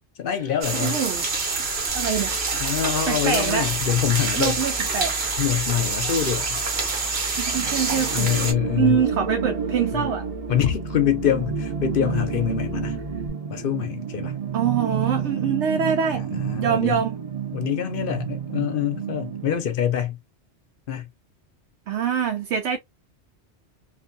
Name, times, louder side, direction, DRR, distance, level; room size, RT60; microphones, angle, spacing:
voice 1, 0.2-1.0 2.6-4.6 5.4-6.7 8.1-9.0 9.9-10.1 10.5-13.0 13.5-14.3 16.1-17.0 17.5-20.2 20.9-21.1, left 10 dB, 60° left, 0.7 m, -25 dB
sound 1, 0.6-8.5, right 4 dB, 70° right, 1.1 m, -26 dB
voice 2, 0.7-1.2 1.9-2.4 3.1-3.7 4.4-5.1 7.4-8.3 8.8-10.3 14.5-16.3 16.5-17.2 21.9-22.8, right 7 dB, 90° right, 0.9 m, -24 dB
sound 2, 1.9-13.3, left 3 dB, 5° left, 0.3 m, -40 dB
sound 3, 7.5-19.6, right 7 dB, 40° right, 0.6 m, -30 dB
2.6 x 2.6 x 2.5 m
omnidirectional pair, 1.1 m